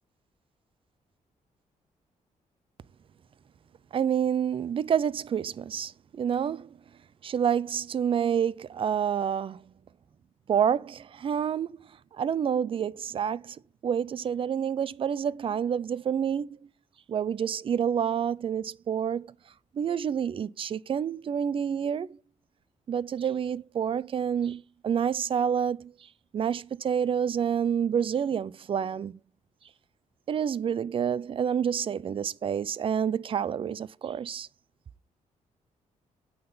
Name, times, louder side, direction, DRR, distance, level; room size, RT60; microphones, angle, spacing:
voice 1, 3.9-6.7 7.2-9.6 10.5-11.8 12.1-13.6 13.8-16.6 17.1-19.3 19.7-22.2 22.9-25.9 26.3-29.2 30.3-34.5, right 8 dB, 40° right, 0.4 m, -28 dB
8.9 x 5.8 x 3.9 m
cardioid pair, 130°, 13 cm